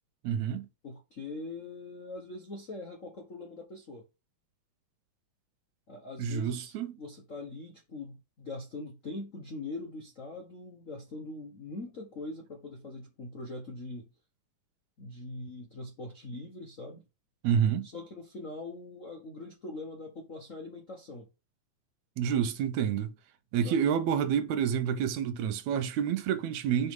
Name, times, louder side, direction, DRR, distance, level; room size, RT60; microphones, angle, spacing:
voice 1, 0.2-0.7 6.2-7.0 17.4-17.9 22.2-23.1 23.5-26.9, right 8 dB, 80° right, 2.0 m, -28 dB
voice 2, 0.8-4.0 5.9-14.1 15.0-17.0 17.8-21.3 23.6-23.8, left 2 dB, 60° left, 0.8 m, -42 dB
6.3 x 3.7 x 5.1 m
omnidirectional pair, 3.4 m